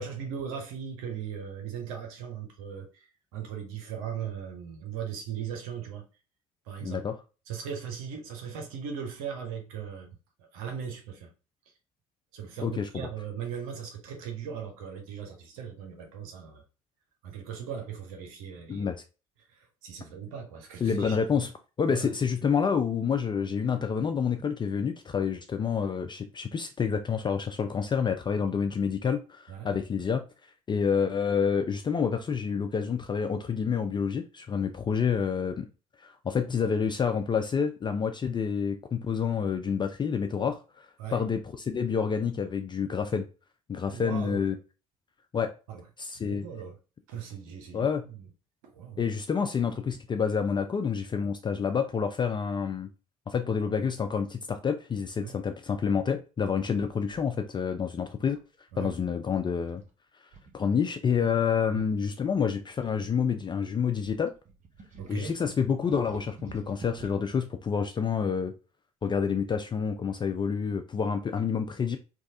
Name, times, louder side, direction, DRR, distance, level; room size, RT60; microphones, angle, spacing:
voice 1, 0.0-6.1 6.7-7.0 7.5-11.3 12.3-16.6 17.2-18.9 19.5-21.2 21.9-22.1 29.5-29.7 41.0-41.2 43.9-44.4 45.7-45.8 46.1-46.8 47.1-48.3 48.6-49.0 55.2-55.4 58.7-58.9 61.7-61.8 65.0-65.3, right 7 dB, 75° right, 0.8 m, -38 dB
voice 2, 6.8-7.2 12.6-13.1 18.7-19.0 20.8-21.5 21.8-30.2 30.7-35.7 36.0-43.3 43.7-44.6 45.3-45.5 46.0-46.4 47.7-48.0 49.0-52.9 53.3-58.4 58.8-59.8 60.5-64.3 65.1-68.5 69.0-72.0, left 6 dB, 25° left, 0.4 m, -28 dB
sound 1, 56.8-57.2 58.2-59.1 59.6-59.9 60.3-60.5 60.8-60.9 61.1-61.3 61.7-63.6 64.0-67.3, right 4 dB, 40° right, 0.9 m, -50 dB
3.0 x 2.3 x 2.7 m
hypercardioid pair, 55°, 18 cm